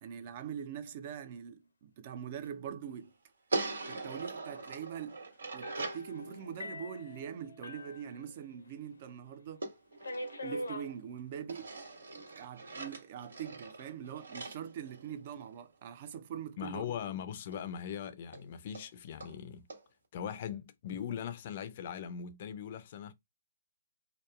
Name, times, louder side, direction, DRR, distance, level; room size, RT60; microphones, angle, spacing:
voice 1, 0.0-3.1 3.9-5.2 5.5-9.7 10.4-11.7 12.3-16.8, right 8 dB, 45° right, 0.4 m, -43 dB
sound 1, 3.5-6.1 9.6-11.0 11.5-15.6 17.5-17.6 17.9-18.0 18.3-18.4 18.7-18.9 19.2-19.3 19.7-19.8, right 3 dB, 85° right, 1.3 m, -41 dB
sound 2, 5.6-8.8 9.1-9.2 10.0-10.9 11.8-12.3, left 1 dB, 90° left, 0.7 m, -43 dB
voice 2, 16.6-19.7 20.1-23.1, left 8 dB, 45° left, 0.4 m, -40 dB
2.9 x 2.1 x 2.3 m
hypercardioid pair, 145°, 0 cm